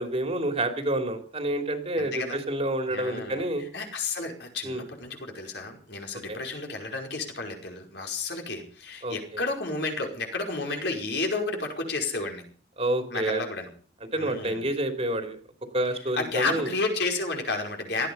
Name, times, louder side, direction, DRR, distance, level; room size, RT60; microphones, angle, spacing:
voice 1, 0.0-3.6 4.6-4.8 6.3-6.4 9.0-9.4 12.8-13.4 14.1-15.4 15.7-16.7, right 1 dB, 30° right, 6 dB, 3.0 m, -28 dB
voice 2, 2.0-2.4 2.9-3.4 3.7-12.5 13.1-13.7 14.1-14.6 16.2-18.1, left 3 dB, 60° left, 3 dB, 5.2 m, -31 dB
18.0 x 14.0 x 5.5 m, 0.42 s
head